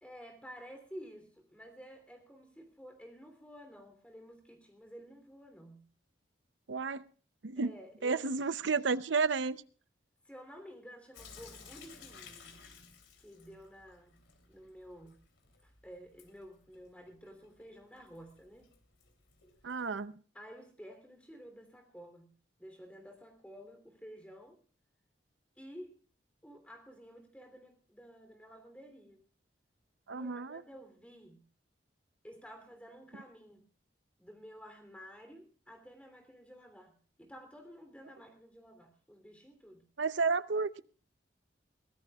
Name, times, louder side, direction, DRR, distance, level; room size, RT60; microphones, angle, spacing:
voice 1, 0.0-5.9 7.6-8.2 10.2-12.6 13.2-15.2 15.6-18.7 20.3-24.6 25.6-26.0 26.4-29.2 30.1-31.5 32.2-33.7 34.2-39.9, equal, 5° left, 3.1 m, -52 dB
voice 2, 6.7-7.0 7.4-7.7 8.0-9.6 19.6-20.2 30.1-30.6 40.0-40.8, right 4 dB, 85° right, 0.7 m, -31 dB
Sink (filling or washing) / Drip, 11.1-20.0, left 5 dB, 90° left, 3.0 m, -57 dB
23.0 x 16.5 x 2.4 m
head